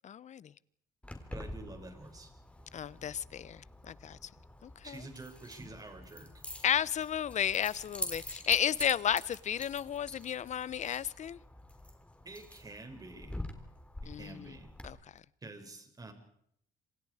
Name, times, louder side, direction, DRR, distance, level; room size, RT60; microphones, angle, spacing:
voice 1, 0.0-0.5 2.7-4.3 4.6-5.0 6.6-11.4 14.1-14.5 14.8-15.2, left 9 dB, 45° left, 0.9 m, -33 dB
Keys jangling, 1.0-14.9, left 1 dB, 5° left, 4.1 m, -46 dB
voice 2, 1.3-2.3 4.8-6.4 12.2-13.4 14.2-14.7 15.4-16.1, right 2 dB, 20° right, 6.3 m, -48 dB
27.0 x 27.0 x 5.0 m
cardioid pair, 110°, 17 cm